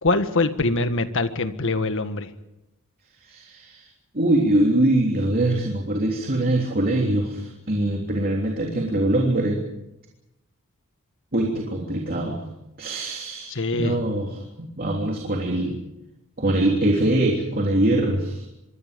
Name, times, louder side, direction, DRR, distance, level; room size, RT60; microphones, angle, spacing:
voice 1, 0.0-2.3 13.5-14.0, left 2 dB, 65° left, 9 dB, 1.6 m, -23 dB
voice 2, 3.2-3.9 4.1-9.6 11.3-12.4 12.8-15.8 16.4-18.5, right 1 dB, 45° right, 0 dB, 3.3 m, -23 dB
25.5 x 23.0 x 5.3 m, 0.91 s
head